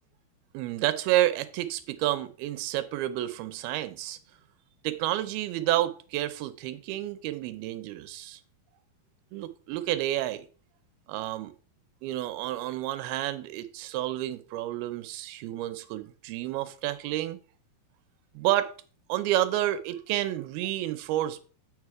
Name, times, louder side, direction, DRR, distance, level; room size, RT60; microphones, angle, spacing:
voice 1, 0.5-4.2 4.8-8.4 9.3-10.5 11.1-11.5 12.0-17.4 18.3-18.7 19.1-21.4, right 14 dB, 80° right, 2.6 m, -30 dB
8.4 x 4.9 x 4.7 m
omnidirectional pair, 4.5 m